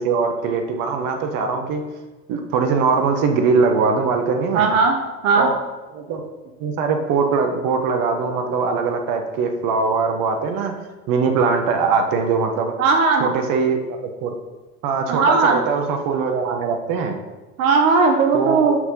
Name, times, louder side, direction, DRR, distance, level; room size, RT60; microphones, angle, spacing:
voice 1, 0.0-1.8 2.3-4.7 5.3-5.6 5.9-6.3 6.6-10.7 11.1-12.7 13.2-14.3 14.8-17.2 18.3-18.7, right 5 dB, 45° right, 5 dB, 1.3 m, -21 dB
voice 2, 4.5-5.0 5.2-5.5 12.8-13.3 15.1-15.6 17.6-18.8, right 4 dB, 65° right, 3 dB, 1.1 m, -17 dB
6.2 x 5.9 x 5.5 m, 1.2 s
figure-of-eight pair, 80°, 43 cm